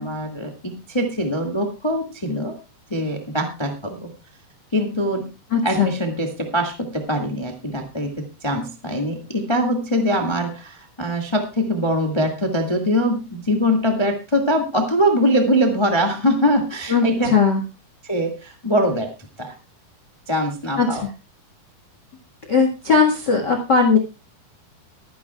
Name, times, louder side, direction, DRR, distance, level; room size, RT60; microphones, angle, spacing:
voice 1, 0.0-2.6 2.9-4.1 4.7-5.3 5.6-17.3 18.0-19.1 19.4-19.5 20.3-21.0, equal, 25° left, 4 dB, 0.6 m, -22 dB
voice 2, 5.5-5.9 16.9-17.6 20.8-21.0 22.5-24.0, left 5 dB, 45° left, 4 dB, 1.4 m, -18 dB
22.5 x 10.0 x 2.4 m, 0.28 s
omnidirectional pair, 4.6 m